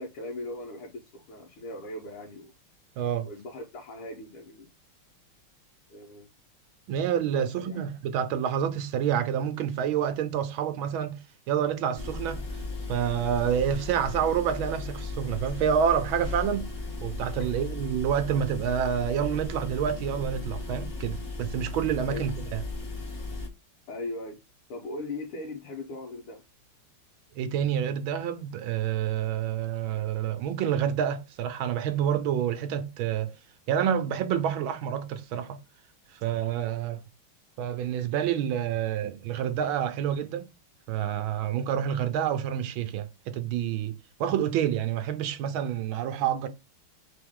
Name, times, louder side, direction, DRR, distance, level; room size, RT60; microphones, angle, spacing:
voice 1, 0.0-2.5 3.2-4.7 5.9-6.3 7.3-7.8 22.1-22.3 23.9-24.4 24.7-26.4, left 2 dB, 85° left, 1.9 m, -39 dB
voice 2, 3.0-3.3 6.9-11.2 11.5-12.4 12.9-16.7 17.0-22.6 27.3-33.3 33.7-35.6 36.1-37.0 37.6-40.5 40.9-46.5, right 9 dB, 75° right, 1.4 m, -28 dB
sound 1, 11.9-23.5, left 2 dB, 30° left, 1.6 m, -36 dB
3.8 x 3.8 x 3.6 m
omnidirectional pair, 2.4 m